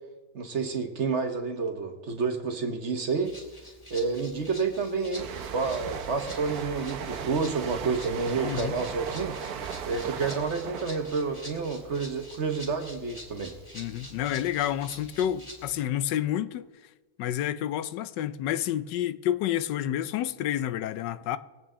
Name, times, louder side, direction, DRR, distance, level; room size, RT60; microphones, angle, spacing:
voice 1, 0.3-3.3 3.9-5.3 5.5-9.4 9.9-13.6, right 4 dB, 50° right, 1.0 m, -29 dB
Rattle (instrument), 3.2-15.8, equal, 15° left, 2.4 m, -47 dB
sound 1, 5.1-12.6 12.9-13.2, right 7 dB, 65° right, 1.2 m, -38 dB
voice 2, 8.4-8.7 13.7-16.7 17.2-21.4, left 11 dB, 90° left, 1.3 m, -29 dB
21.5 x 8.6 x 3.7 m
omnidirectional pair, 1.9 m